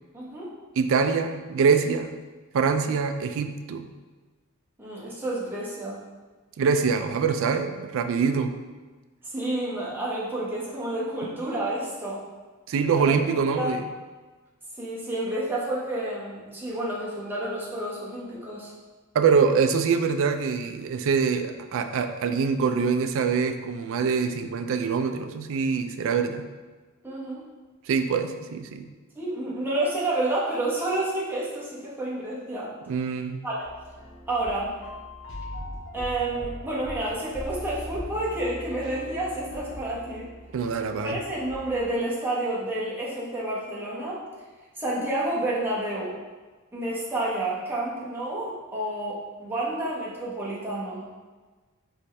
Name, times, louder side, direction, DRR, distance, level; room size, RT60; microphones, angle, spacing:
voice 1, 0.1-0.5 4.8-6.0 9.2-12.2 13.0-13.2 13.6-13.7 14.8-18.7 27.0-27.4 29.1-32.7 33.4-33.7 34.3-34.7 35.9-40.3 41.0-44.2 44.8-46.2 46.7-51.0, right 1 dB, 10° right, -7 dB, 0.9 m, -30 dB
voice 2, 0.8-2.2 2.5-3.9 6.6-8.5 12.7-13.8 19.1-26.5 27.9-28.9 32.9-33.4 40.5-41.2, right 5 dB, 65° right, 8 dB, 0.3 m, -24 dB
sound 1, 33.6-41.9, left 1 dB, 60° left, 0.9 m, -40 dB
4.2 x 3.2 x 3.3 m, 1.3 s
head